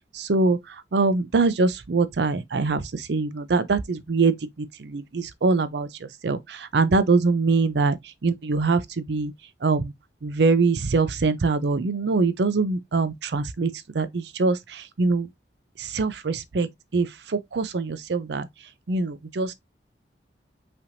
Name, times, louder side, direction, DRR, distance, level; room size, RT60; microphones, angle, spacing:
voice 1, 0.1-9.3 9.6-9.9 10.2-15.3 15.8-18.5 18.9-19.5, right 3 dB, 70° right, 0.5 m, -24 dB
5.5 x 3.4 x 2.6 m
head